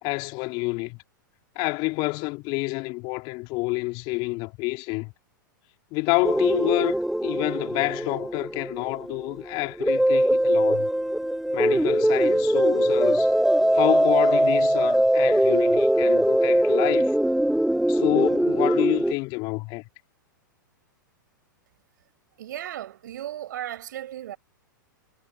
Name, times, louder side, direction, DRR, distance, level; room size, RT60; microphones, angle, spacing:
voice 1, 0.0-1.0 1.6-5.1 5.9-10.9 11.5-13.3 13.7-17.1 17.9-19.8, left 26 dB, 45° left, 2.5 m, -28 dB
sound 1, 6.2-19.1, right 1 dB, ahead, 0.3 m, -22 dB
voice 2, 22.4-24.4, right 12 dB, 65° right, 6.4 m, -35 dB
figure-of-eight pair, 100°, 11 cm